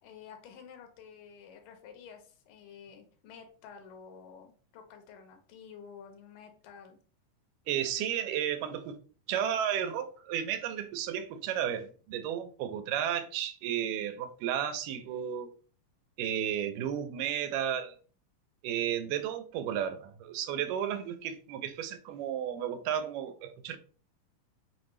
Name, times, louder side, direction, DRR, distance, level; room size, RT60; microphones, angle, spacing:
voice 1, 0.0-7.0, left 7 dB, 90° left, 2.5 m, -51 dB
voice 2, 7.7-9.0 9.3-15.5 16.2-18.0 18.6-23.8, right 9 dB, 85° right, 2.1 m, -33 dB
5.5 x 2.6 x 3.0 m
omnidirectional pair, 3.8 m